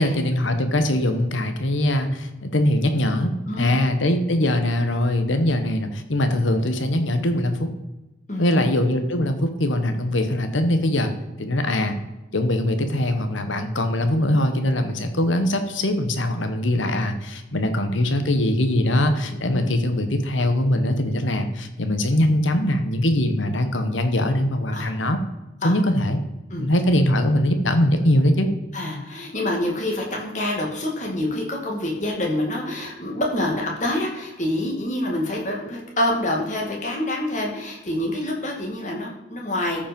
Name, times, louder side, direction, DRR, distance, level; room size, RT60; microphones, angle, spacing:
voice 1, 0.0-3.3 3.6-7.7 8.4-11.1 11.4-12.0 12.3-25.2 25.6-26.2 26.6-28.5, left 1 dB, 80° left, 8 dB, 1.3 m, -22 dB
voice 2, 3.5-3.8 8.3-8.6 19.3-19.7 24.7-24.9 25.6-25.7 26.5-26.7 28.7-39.9, left 1 dB, 40° left, -1 dB, 2.3 m, -27 dB
13.5 x 5.4 x 5.3 m, 1.0 s
head